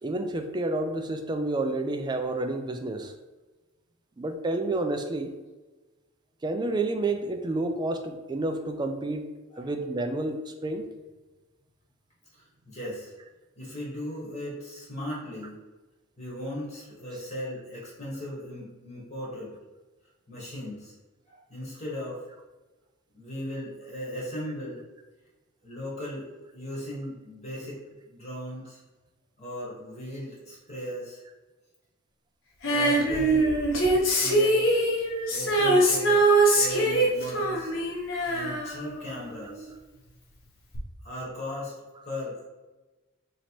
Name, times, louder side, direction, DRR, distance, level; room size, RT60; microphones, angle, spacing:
voice 1, 0.0-3.1 4.2-5.3 6.4-9.3 9.6-10.9, right 2 dB, 20° right, 6 dB, 0.3 m, -29 dB
voice 2, 12.6-13.1 13.6-15.6 16.2-19.5 20.3-20.9 21.3-22.2 23.1-24.8 25.6-26.2 26.5-27.8 28.1-28.8 29.4-31.2 32.7-33.6 33.9-34.6 35.3-37.7 38.2-39.7 41.0-41.7 42.0-42.5, equal, 35° left, -5 dB, 1.1 m, -37 dB
Female singing, 32.6-39.6 40.7-40.8, right 1 dB, 65° left, 0.8 m, -23 dB
2.9 x 2.8 x 4.3 m, 1.2 s
head